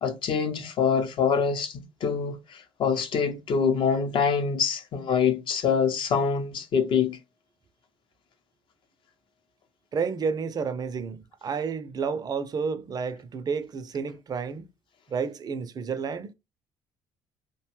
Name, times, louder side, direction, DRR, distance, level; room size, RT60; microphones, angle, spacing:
voice 1, 0.0-7.2, left 6 dB, 55° left, 0.7 m, -25 dB
voice 2, 9.9-14.7 15.1-16.3, right 5 dB, 40° right, 0.4 m, -30 dB
2.6 x 2.2 x 3.0 m
supercardioid pair, 65°, 10 cm